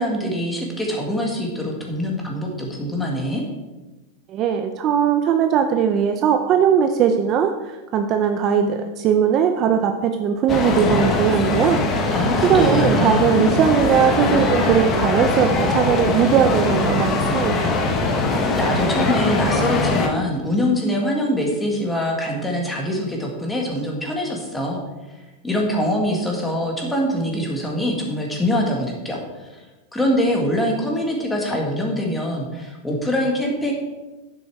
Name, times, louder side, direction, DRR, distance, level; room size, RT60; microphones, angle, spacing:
voice 1, 0.0-3.4 12.1-13.3 18.6-24.8 25.4-29.6 29.9-33.7, equal, 5° left, 0 dB, 1.9 m, -24 dB
voice 2, 4.3-11.8 12.4-17.8, right 8 dB, 30° right, 6 dB, 0.6 m, -19 dB
sound 1, 10.5-20.1, left 2 dB, 25° left, 1.3 m, -21 dB
10.0 x 7.7 x 4.8 m, 1.1 s
supercardioid pair, 165°, 0 cm